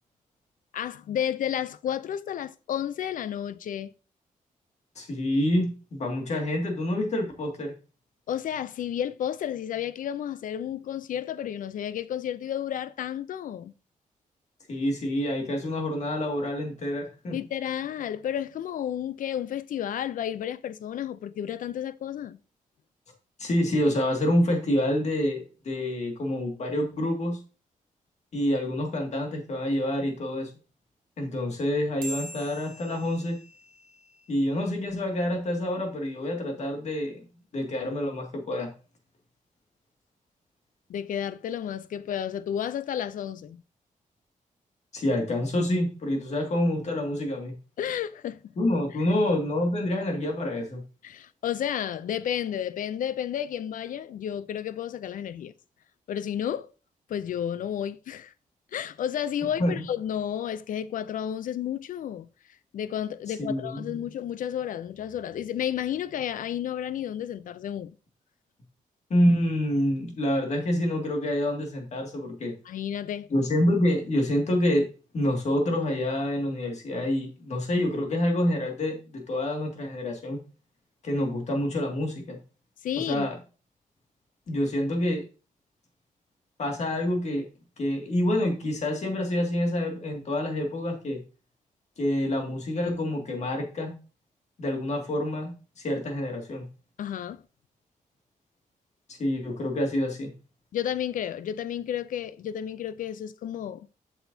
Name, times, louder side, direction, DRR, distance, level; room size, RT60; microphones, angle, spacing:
voice 1, 0.7-3.9 8.3-13.7 17.3-22.4 40.9-43.6 47.8-48.4 51.0-55.5 56.1-56.7 57.1-58.3 58.7-62.3 62.7-67.9 72.6-73.3 82.8-83.3 97.0-97.4 100.7-103.9, left 10 dB, 70° left, 0.5 m, -32 dB
voice 2, 5.0-7.7 14.7-17.4 23.4-27.4 28.3-30.5 31.2-33.4 34.3-37.1 37.5-38.7 44.9-47.5 48.6-50.8 59.6-59.8 63.4-64.0 69.1-72.5 73.3-74.9 75.1-80.4 81.0-82.4 83.0-83.4 84.5-85.2 86.6-87.5 87.8-91.2 92.0-94.0 94.6-96.6 99.1-100.3, left 1 dB, 55° left, 2.1 m, -27 dB
sound 1, 32.0-34.9, right 2 dB, 75° right, 1.5 m, -43 dB
7.8 x 6.3 x 2.7 m
wide cardioid pair, 125°, 14 cm